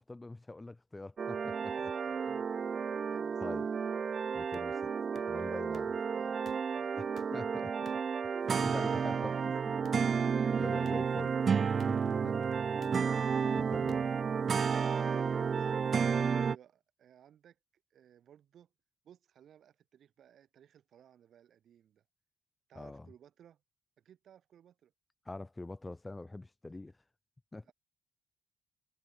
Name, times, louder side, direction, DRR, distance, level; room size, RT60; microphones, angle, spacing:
voice 1, 0.0-1.9 2.3-2.4 3.4-3.7 4.3-4.7 5.2-5.9 7.0-7.1 7.3-7.7 8.2-9.7 10.6-11.3 11.9-12.4 13.0-14.1 22.7-23.1 25.3-26.9 27.5-27.7, left 2 dB, 15° left, 0.7 m, -44 dB
sound 1, 1.2-16.5, right 6 dB, 45° right, 0.4 m, -32 dB
voice 2, 1.6-2.5 2.9-3.5 4.6-5.0 5.5-7.7 8.0-9.5 10.4-11.2 14.7-15.7 16.3-17.6 17.9-18.7 19.0-22.0 22.7-23.6 24.0-24.9 27.6-27.7, right 9 dB, 65° right, 7.5 m, -60 dB
sound 2, 4.5-4.7 5.1-5.3 5.7-5.9 6.4-6.6 7.2-7.3 7.8-8.1 8.6-8.8 9.8-10.0 10.8-11.0 11.8-11.9 12.8-12.9 13.9-14.0, left 8 dB, 60° left, 1.5 m, -54 dB
cardioid pair, 90°, 0 cm